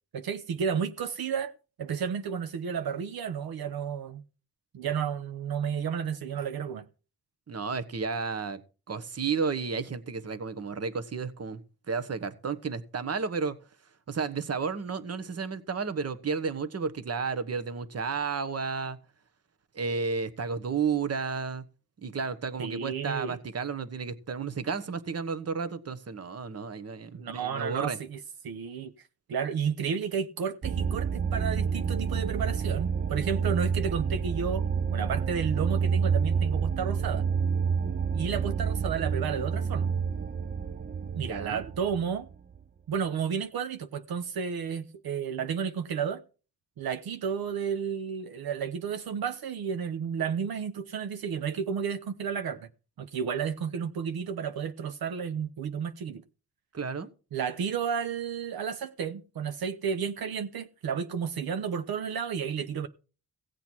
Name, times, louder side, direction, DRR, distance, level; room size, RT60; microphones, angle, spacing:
voice 1, 0.1-1.5 1.8-4.2 4.7-6.9 22.6-23.4 27.1-28.2 28.4-28.9 29.3-34.6 34.9-37.2 38.1-39.9 41.2-42.3 42.9-46.2 46.8-52.7 53.0-56.2 57.3-62.9, right 7 dB, 75° right, 0.9 m, -32 dB
voice 2, 7.5-8.6 8.9-11.6 11.9-13.6 14.1-19.0 19.7-21.7 22.0-28.0 41.2-41.6 56.7-57.1, right 5 dB, 40° right, 1.2 m, -32 dB
sound 1, 30.6-42.6, right 6 dB, 25° right, 0.5 m, -29 dB
16.5 x 7.9 x 4.5 m
cardioid pair, 80°, 37 cm